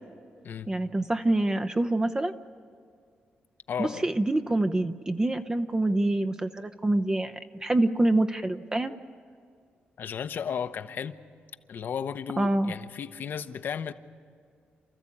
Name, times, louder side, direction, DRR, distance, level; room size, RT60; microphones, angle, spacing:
voice 1, 0.7-2.3 3.8-8.9 12.4-12.7, right 2 dB, 20° right, 9 dB, 0.7 m, -26 dB
voice 2, 3.7-4.1 10.0-11.2 11.7-13.9, left 7 dB, 65° left, 11 dB, 0.9 m, -34 dB
28.5 x 14.0 x 8.7 m, 2.3 s
cardioid pair, 115°, 4 cm